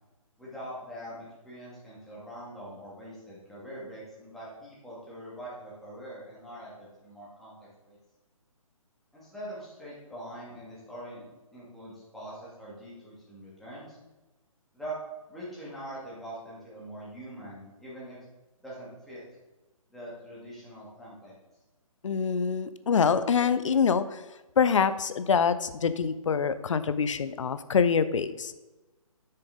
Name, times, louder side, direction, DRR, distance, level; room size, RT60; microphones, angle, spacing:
voice 1, 0.4-7.6 7.8-8.0 9.1-14.0 14.7-15.0 15.3-18.2 18.6-19.2 19.9-21.4, right 1 dB, ahead, -8 dB, 2.4 m, -43 dB
voice 2, 22.0-24.2 24.6-28.6, left 6 dB, 60° left, 13 dB, 0.6 m, -25 dB
7.7 x 6.6 x 3.7 m, 1.1 s
figure-of-eight pair, 140°, 18 cm